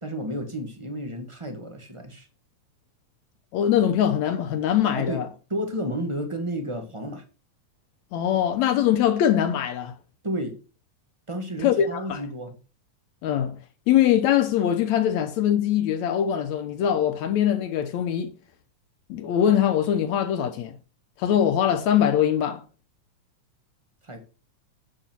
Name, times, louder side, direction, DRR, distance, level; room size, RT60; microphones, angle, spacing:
voice 1, 0.0-2.3 4.9-5.2 5.5-7.2 10.2-10.6 11.3-12.5 24.0-24.2, equal, 30° right, 0.5 m, -31 dB
voice 2, 3.5-5.3 8.1-10.0 11.6-12.2 13.2-13.6 13.9-18.3 19.1-20.8 21.2-22.6, left 10 dB, 70° left, 2.0 m, -22 dB
10.0 x 7.6 x 4.5 m
omnidirectional pair, 3.6 m